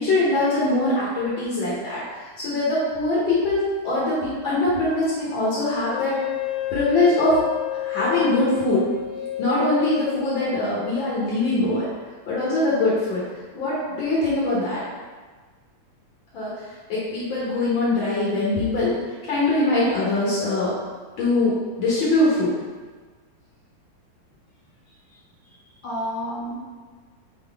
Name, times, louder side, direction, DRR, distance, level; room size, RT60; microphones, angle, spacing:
voice 1, 0.0-2.0 2.4-6.2 6.7-7.4 7.8-8.9 9.4-11.9 12.3-13.2 13.5-14.8 16.3-16.5 16.9-18.9 19.3-20.7 21.2-22.5, left 2 dB, 65° left, -8 dB, 1.3 m, -22 dB
Wind instrument woodwind instrument, 5.9-11.0, left 15 dB, 80° left, 1.8 m, -30 dB
voice 2, 24.9-26.6, equal, 45° left, -8 dB, 1.8 m, -33 dB
4.0 x 3.9 x 3.4 m, 1.4 s
omnidirectional pair, 3.4 m